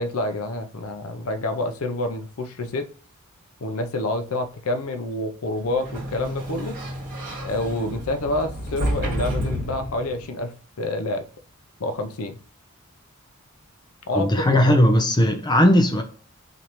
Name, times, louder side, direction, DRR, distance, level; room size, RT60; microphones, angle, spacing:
voice 1, 0.0-2.9 3.6-6.7 7.4-11.2 11.8-12.4 14.1-14.8, left 2 dB, 70° left, 0.6 m, -28 dB
Sliding door, 5.6-10.3, equal, 40° right, 1.8 m, -30 dB
voice 2, 14.1-16.0, equal, 20° left, 0.6 m, -18 dB
4.1 x 3.2 x 2.9 m
head